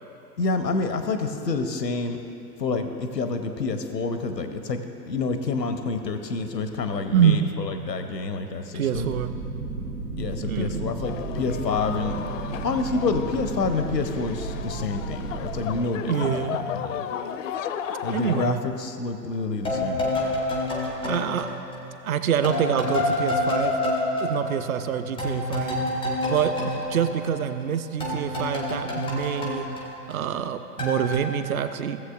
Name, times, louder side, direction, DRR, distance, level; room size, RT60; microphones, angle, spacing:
voice 1, 0.4-2.2 2.6-4.8 5.1-9.1 10.2-12.2 12.6-17.0 18.0-20.1, left 3 dB, 80° left, 7 dB, 0.9 m, -28 dB
voice 2, 7.1-7.4 8.7-9.3 10.5-11.0 15.9-16.7 18.1-18.6 21.0-21.5 22.0-23.8 24.2-25.8 26.3-29.7 30.1-32.0, right 8 dB, 55° right, 10 dB, 0.7 m, -26 dB
sound 1, 8.9-15.7, right 3 dB, 90° right, 1.4 m, -33 dB
sound 2, 11.0-18.5, left 8 dB, 50° left, 0.5 m, -34 dB
sound 3, 19.6-22.1 22.4-27.7 28.0-30.5 30.8-31.2, left 1 dB, 5° right, 0.3 m, -28 dB
16.5 x 7.6 x 2.4 m, 3.0 s
figure-of-eight pair, 105°, 49 cm